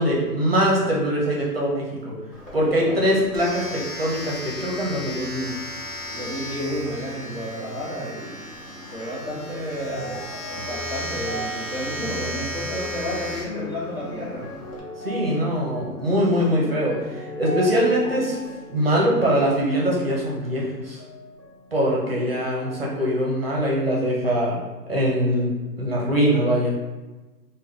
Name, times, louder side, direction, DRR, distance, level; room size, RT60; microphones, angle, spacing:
voice 1, 0.0-2.1 2.5-5.5 15.0-18.4 18.7-21.0 21.7-24.6 24.9-26.7, equal, 40° right, -4 dB, 0.5 m, -22 dB
Domestic sounds home sounds, 2.3-14.8, equal, 55° left, 1.0 m, -35 dB
voice 2, 2.6-3.0 6.1-8.4 8.9-10.2 10.5-14.4, equal, 15° left, -15 dB, 1.2 m, -31 dB
sound 1, 8.8-22.3 22.6-23.5 24.2-24.3, equal, 80° left, 1.0 m, -39 dB
3.4 x 2.2 x 3.2 m, 1.2 s
hypercardioid pair, 170°, 49 cm